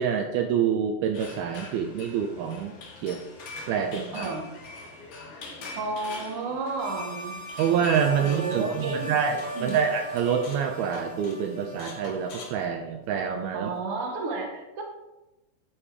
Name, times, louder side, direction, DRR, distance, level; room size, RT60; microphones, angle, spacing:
voice 1, 0.0-2.8 3.0-3.2 3.7-4.3 7.6-13.7, right 7 dB, 75° right, 4 dB, 2.4 m, -26 dB
sound 1, 1.1-10.9, left 3 dB, 50° left, 2.1 m, -44 dB
voice 2, 4.1-4.5 5.3-7.4 7.7-9.2 9.5-9.8 13.5-14.8, right 3 dB, 60° right, 1 dB, 1.5 m, -33 dB
sound 2, 6.8-12.6, right 1 dB, 5° right, 2.4 m, -40 dB
sound 3, 7.9-9.8 10.2-10.7 10.9-11.4 11.8-13.4, left 3 dB, 70° left, 4.1 m, -44 dB
12.5 x 5.1 x 4.9 m, 0.99 s
omnidirectional pair, 4.9 m